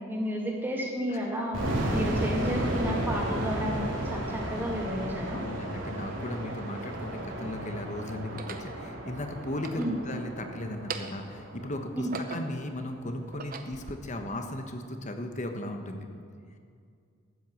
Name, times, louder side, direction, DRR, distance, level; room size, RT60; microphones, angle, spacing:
voice 1, 0.0-5.4 9.8-10.0 11.9-12.1, equal, 10° right, -2 dB, 2.2 m, -32 dB
voice 2, 1.1-1.4 1.9-2.0 5.3-16.1, left 1 dB, 40° left, 5 dB, 1.2 m, -36 dB
sound 1, 1.5-12.4, right 1 dB, 90° right, 2.9 m, -34 dB
sound 2, 5.7-5.8 6.6-7.5 8.2-8.7 9.5-10.4 10.7-11.3 11.8-12.7 13.2-14.0, right 5 dB, 45° right, 0.8 m, -41 dB
13.0 x 9.0 x 7.8 m, 2.2 s
head